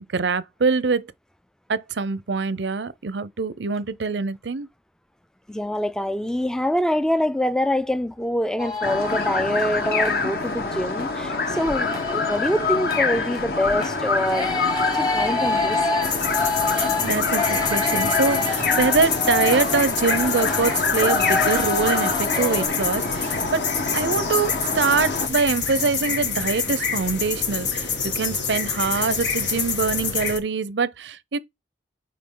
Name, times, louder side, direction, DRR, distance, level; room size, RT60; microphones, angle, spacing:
voice 1, 0.1-1.1 1.7-4.7 16.8-23.6 23.9-31.4, right 4 dB, 80° right, 0.6 m, -24 dB
voice 2, 5.5-14.6 14.9-15.8, left 1 dB, 5° left, 0.3 m, -25 dB
sound 1, 8.6-10.2 10.6-22.7, left 3 dB, 20° left, 1.2 m, -28 dB
sound 2, 8.8-25.3, left 3 dB, 55° left, 1.1 m, -26 dB
sound 3, 16.0-30.4, left 6 dB, 85° left, 1.8 m, -27 dB
9.5 x 3.6 x 3.8 m
head